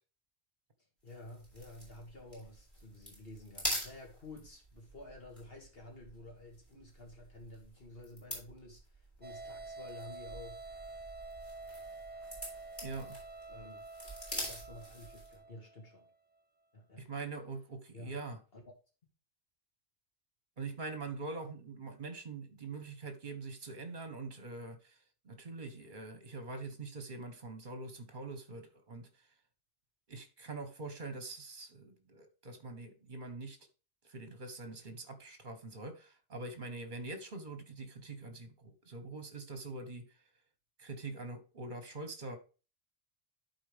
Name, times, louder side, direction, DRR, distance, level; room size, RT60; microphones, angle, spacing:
voice 1, 1.0-10.6 13.5-13.8 14.3-16.1 16.7-17.1 17.9-18.1 18.5-18.6, left 2 dB, 60° left, 2.4 m, -51 dB
sound 1, 1.1-15.4, equal, 10° left, 5.0 m, -46 dB
sound 2, 9.2-16.1, right 3 dB, 15° right, 0.3 m, -48 dB
voice 2, 12.8-13.2 17.0-18.4 20.6-25.0 25.2-29.3 30.1-33.6 34.0-40.1 40.8-42.4, right 3 dB, 50° right, 1.4 m, -44 dB
11.5 x 4.4 x 3.4 m
omnidirectional pair, 1.1 m